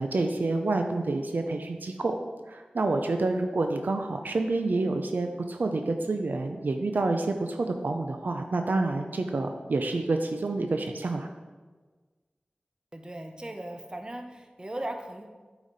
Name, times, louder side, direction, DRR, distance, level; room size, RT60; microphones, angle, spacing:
voice 1, 0.0-2.2 2.5-11.3, right 3 dB, 75° right, 5 dB, 0.5 m, -28 dB
voice 2, 12.9-15.3, right 1 dB, 30° right, 4 dB, 0.9 m, -38 dB
8.8 x 5.0 x 4.1 m, 1.4 s
wide cardioid pair, 55°, 3 cm